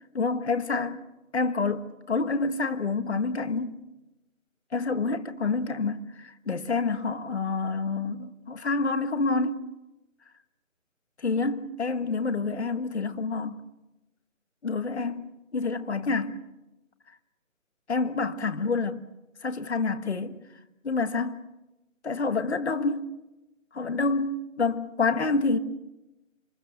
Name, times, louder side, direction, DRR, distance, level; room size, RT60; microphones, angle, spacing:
voice 1, 0.1-1.0 1.3-3.7 4.7-9.7 11.2-13.6 14.6-16.4 17.9-19.0 19.4-20.4 20.8-21.4 22.0-23.1 23.7-25.6, left 3 dB, 55° left, 1.7 m, -28 dB
26.5 x 24.0 x 6.6 m
figure-of-eight pair, 155°, 39 cm